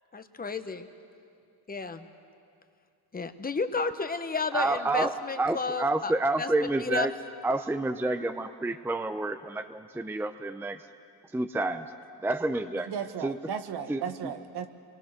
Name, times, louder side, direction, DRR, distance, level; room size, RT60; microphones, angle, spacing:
voice 1, 0.1-0.9 1.7-2.1 3.1-6.1 6.4-6.5 6.8-7.1, left 4 dB, 20° left, 8 dB, 1.1 m, -32 dB
voice 2, 4.5-7.1 7.4-10.9 11.3-11.9 12.2-12.9 13.2-13.4 13.9-14.3, right 2 dB, 5° right, 9 dB, 0.6 m, -29 dB
voice 3, 12.8-14.7, right 7 dB, 70° right, 8 dB, 1.5 m, -35 dB
30.0 x 22.5 x 6.7 m, 2.4 s
cardioid pair, 130°, 40 cm